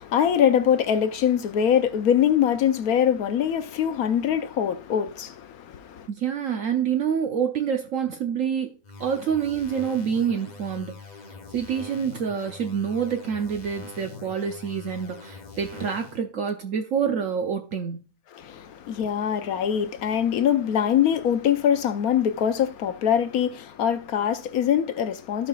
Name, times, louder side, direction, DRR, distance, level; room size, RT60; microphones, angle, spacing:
voice 1, 0.0-6.1 18.3-25.5, left 9 dB, 65° left, 1.1 m, -23 dB
voice 2, 6.1-11.0 11.5-18.1, right 7 dB, 60° right, 1.0 m, -27 dB
sound 1, 8.8-16.2, left 4 dB, 45° left, 0.5 m, -43 dB
15.0 x 5.4 x 2.4 m
omnidirectional pair, 1.8 m